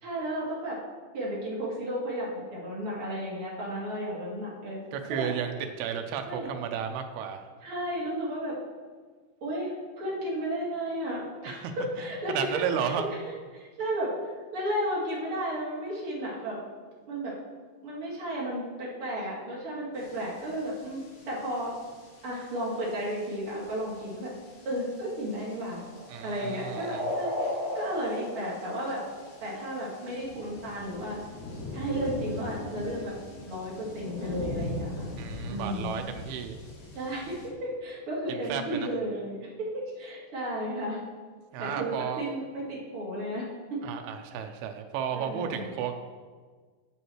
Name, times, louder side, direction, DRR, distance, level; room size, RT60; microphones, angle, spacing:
voice 1, 0.0-0.8 1.1-4.8 5.1-5.3 6.3-6.5 7.6-8.6 9.4-13.2 13.5-14.1 14.5-16.6 17.1-17.3 17.8-21.0 21.3-21.7 22.2-24.3 24.7-25.8 26.2-27.3 27.7-29.0 29.4-31.2 31.7-33.2 33.5-35.1 35.5-35.9 36.9-37.3 37.6-41.0 41.6-43.4 43.7-43.8 45.1-45.7, right 1 dB, 40° right, -6 dB, 2.4 m, -33 dB
voice 2, 4.9-7.4 11.5-11.7 12.3-13.1 26.1-27.1 35.2-36.6 38.3-38.9 41.5-42.2 43.8-45.9, right 8 dB, 85° right, 5 dB, 2.6 m, -33 dB
sound 1, 20.0-37.5, left 2 dB, 75° left, 3.8 m, -43 dB
sound 2, 24.9-29.6, left 1 dB, 25° left, 1.9 m, -35 dB
11.0 x 8.7 x 3.1 m, 1.5 s
omnidirectional pair, 4.6 m